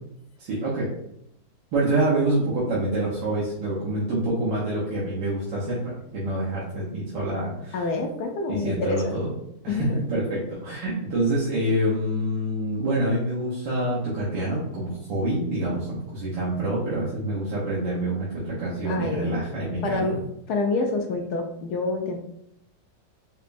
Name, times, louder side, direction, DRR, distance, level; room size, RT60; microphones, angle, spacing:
voice 1, 0.4-0.9 1.7-7.8 8.5-9.3 9.6-20.1, right 1 dB, 75° right, -8 dB, 1.6 m, -26 dB
voice 2, 7.7-9.1 9.7-10.0 18.8-19.3 19.8-20.2 20.5-22.2, left 3 dB, 70° left, 3 dB, 1.0 m, -27 dB
5.1 x 2.2 x 2.5 m, 0.74 s
omnidirectional pair, 2.0 m